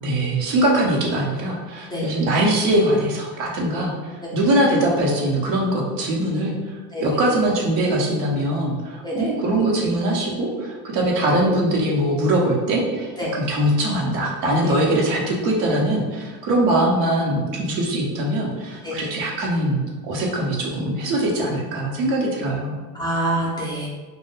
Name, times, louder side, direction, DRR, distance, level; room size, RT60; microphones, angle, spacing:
voice 1, 0.0-3.9 4.3-6.5 7.0-22.8, right 1 dB, 60° right, -2 dB, 0.8 m, -22 dB
voice 2, 22.9-23.9, right 1 dB, 10° left, -7 dB, 0.5 m, -25 dB
2.2 x 2.1 x 3.1 m, 1.3 s
hypercardioid pair, 80°, 49 cm